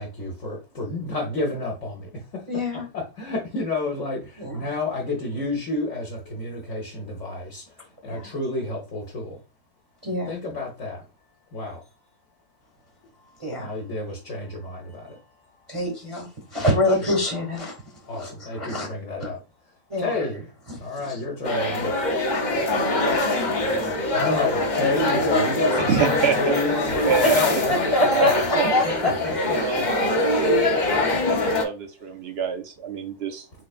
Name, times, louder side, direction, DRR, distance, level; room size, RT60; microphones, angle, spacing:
voice 1, 0.0-7.8 8.0-9.4 10.2-11.1 11.5-11.8 13.2-15.2 15.5-15.8 16.5-16.6 16.9-17.2 18.0-19.4 20.0-20.5 20.8-21.9 23.6-28.5 28.8-29.8, left 3 dB, 60° left, -1 dB, 1.1 m, -30 dB
voice 2, 2.5-2.8 4.4-4.6 8.1-8.2 10.0-10.4 13.4-13.7 15.7-16.3 16.5-17.8 18.2-18.3 18.6-18.9 19.9-20.1 20.7-20.8 21.1-21.2 27.9-28.3 28.7-29.6, left 1 dB, 25° right, -1 dB, 0.8 m, -24 dB
sound 1, 21.4-31.6, left 2 dB, 45° left, 0.7 m, -23 dB
voice 3, 25.9-26.5 27.1-27.4 28.1-28.8 29.5-30.7 31.2-33.6, right 7 dB, 60° right, 6 dB, 0.7 m, -26 dB
3.9 x 3.2 x 2.4 m, 0.31 s
omnidirectional pair, 1.5 m